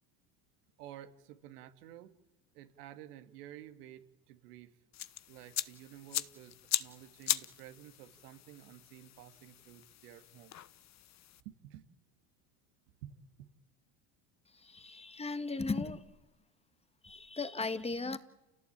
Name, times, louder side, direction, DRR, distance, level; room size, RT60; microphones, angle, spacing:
voice 1, 0.8-2.1 2.5-4.8 5.3-10.6 11.4-11.8 13.0-13.5, right 12 dB, 75° right, 2.6 m, -52 dB
sound 1, 4.9-11.4, left 12 dB, 35° left, 1.0 m, -39 dB
voice 2, 14.5-16.1 17.0-18.2, left 3 dB, 15° left, 1.8 m, -37 dB
29.0 x 17.5 x 8.9 m
supercardioid pair, 100°, 47 cm